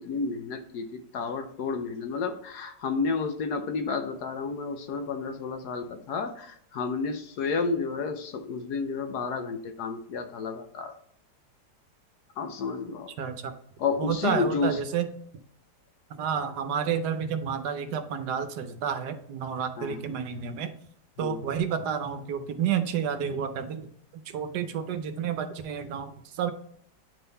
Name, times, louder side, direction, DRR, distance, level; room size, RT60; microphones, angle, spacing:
voice 1, 0.0-10.9 12.4-13.1 13.8-14.8 19.8-20.0 21.2-21.4, left 4 dB, 70° left, 7 dB, 1.2 m, -31 dB
voice 2, 13.2-13.5 14.0-15.1 16.2-20.7 21.2-23.9 24.3-26.5, right 7 dB, 70° right, 9 dB, 1.2 m, -30 dB
9.4 x 3.8 x 4.0 m, 0.67 s
omnidirectional pair, 1.9 m